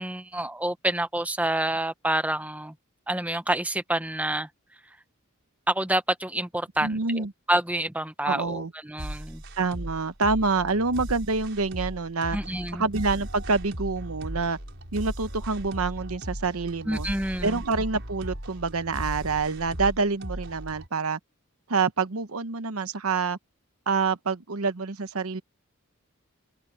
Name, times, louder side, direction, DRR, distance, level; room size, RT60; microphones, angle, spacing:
voice 1, 0.0-2.7 3.1-4.5 5.7-9.4 12.3-12.8 16.8-17.6, right 1 dB, 5° right, 1.2 m, -28 dB
voice 2, 6.8-7.3 8.2-8.7 9.6-12.4 12.7-14.6 14.9-17.1 17.4-21.2 21.7-23.4 23.9-25.4, right 4 dB, 90° right, 1.0 m, -27 dB
sound 1, 9.0-20.9, equal, 60° right, 5.3 m, -37 dB
head